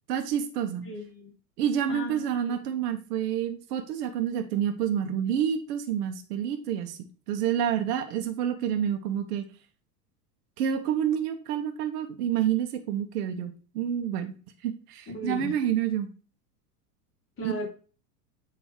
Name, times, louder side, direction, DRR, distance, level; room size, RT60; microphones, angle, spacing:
voice 1, 0.1-0.9 1.6-7.0 7.3-9.4 10.6-14.3 14.6-16.1 17.4-17.5, right 9 dB, 70° right, 6 dB, 1.1 m, -28 dB
voice 2, 0.8-1.3 1.9-2.6 15.1-15.6 17.4-17.7, left 2 dB, 25° left, -1 dB, 2.4 m, -36 dB
8.2 x 3.1 x 4.4 m, 0.36 s
hypercardioid pair, 100°, 49 cm